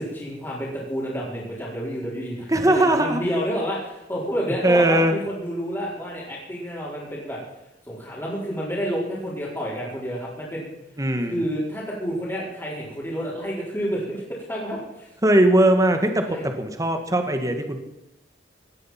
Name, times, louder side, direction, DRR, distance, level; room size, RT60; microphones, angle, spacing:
voice 1, 0.0-7.4 7.9-10.7 11.3-15.1 16.2-16.5, equal, 15° left, -8 dB, 4.4 m, -29 dB
voice 2, 2.5-3.2 4.6-5.2 11.0-11.4 15.2-17.8, right 1 dB, 20° right, 6 dB, 1.7 m, -19 dB
18.0 x 13.0 x 5.8 m, 0.92 s
head